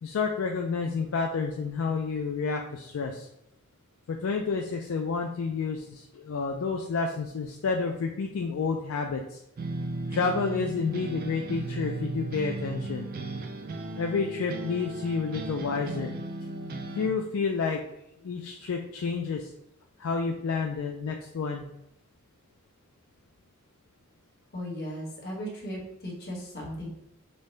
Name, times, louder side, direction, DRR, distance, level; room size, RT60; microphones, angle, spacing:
voice 1, 0.0-3.3 4.1-9.4 10.1-13.1 14.0-16.1 16.9-17.8 18.2-19.5 20.0-21.6, left 5 dB, 65° left, 2 dB, 0.4 m, -30 dB
sound 1, 9.6-17.1, right 2 dB, 45° right, 0.3 m, -36 dB
voice 2, 24.5-26.9, equal, 50° left, -3 dB, 1.2 m, -36 dB
5.2 x 2.2 x 3.1 m, 0.79 s
head